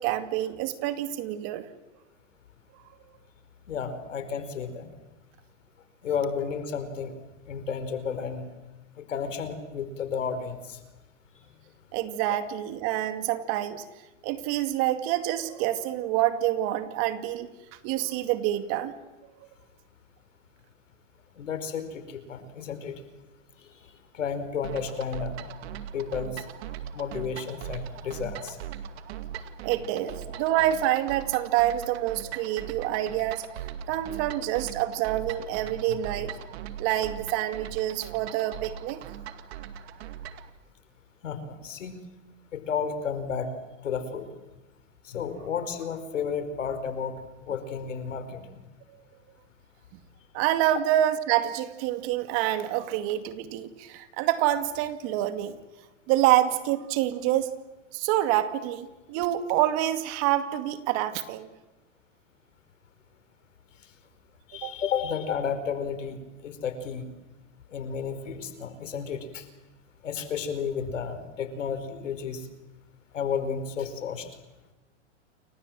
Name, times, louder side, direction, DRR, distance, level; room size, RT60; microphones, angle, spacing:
voice 1, 0.0-1.6 11.9-13.8 14.2-17.5 17.8-18.9 29.6-33.4 33.9-36.3 36.8-39.0 50.3-55.6 56.1-57.5 57.9-61.5 64.6-64.7, right 13 dB, 35° right, 10 dB, 2.3 m, -27 dB
voice 2, 3.7-4.9 6.0-7.2 7.5-8.4 9.0-10.8 21.4-23.0 23.6-23.7 24.1-25.4 25.9-26.4 26.9-28.6 41.2-42.0 42.5-43.5 43.8-44.3 45.0-48.6 64.5-67.1 67.7-69.5 70.0-72.5 73.1-74.3, left 6 dB, 85° left, 10 dB, 4.8 m, -32 dB
sound 1, 24.6-40.5, right 9 dB, 55° right, 2.4 m, -40 dB
29.5 x 24.0 x 7.7 m, 1.1 s
hypercardioid pair, 150°, 37 cm